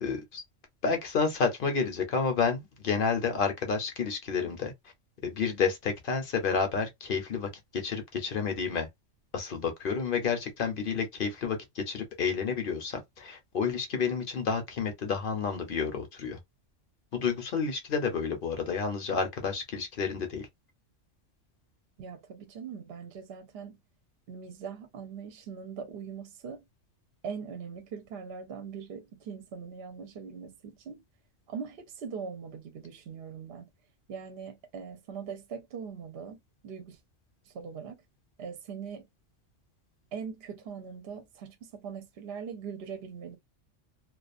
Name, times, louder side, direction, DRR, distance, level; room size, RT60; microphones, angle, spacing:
voice 1, 0.0-0.4 0.8-4.7 5.2-8.9 9.3-16.4 17.1-20.5, left 5 dB, 55° left, 0.8 m, -30 dB
voice 2, 22.0-23.8 24.3-26.6 27.2-31.0 31.5-33.7 34.1-37.0 37.4-38.0 38.4-39.1 40.1-43.4, right 6 dB, 60° right, 0.8 m, -41 dB
2.4 x 2.4 x 2.5 m
omnidirectional pair, 1.2 m